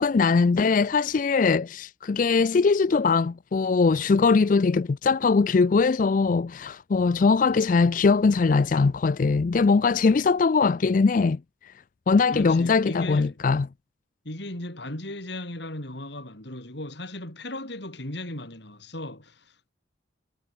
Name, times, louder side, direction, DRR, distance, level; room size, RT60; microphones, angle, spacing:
voice 1, 0.0-11.4 12.1-13.7, left 4 dB, 40° left, 0.4 m, -21 dB
voice 2, 12.3-13.4 14.2-19.7, left 1 dB, 60° left, 4.1 m, -36 dB
head